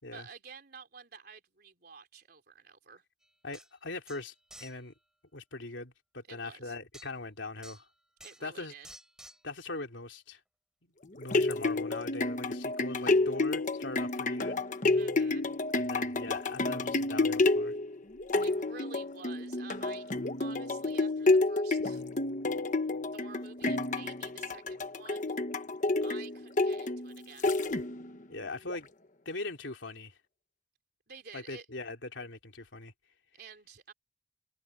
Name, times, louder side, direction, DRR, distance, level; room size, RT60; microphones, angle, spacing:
voice 1, 0.1-3.0 6.3-6.8 8.2-8.9 14.9-15.5 18.4-20.1 20.4-22.0 23.1-25.4 26.0-27.5 31.1-31.7 33.3-33.9, right 5 dB, 55° right, 3.7 m, -50 dB
sound 1, 3.2-3.3 3.5-3.7 4.1-4.8 6.9-7.1 7.6-7.9 8.2-8.5 8.8-9.4, right 1 dB, 5° right, 4.2 m, -52 dB
voice 2, 3.4-4.3 4.6-4.9 5.3-7.9 8.4-8.7 9.4-10.4 11.1-14.6 15.7-17.7 28.3-28.9 29.2-30.1 31.3-32.9, left 2 dB, 90° left, 3.2 m, -41 dB
sound 2, 11.0-28.2 28.7-28.8, left 2 dB, 45° left, 1.2 m, -30 dB
open air
head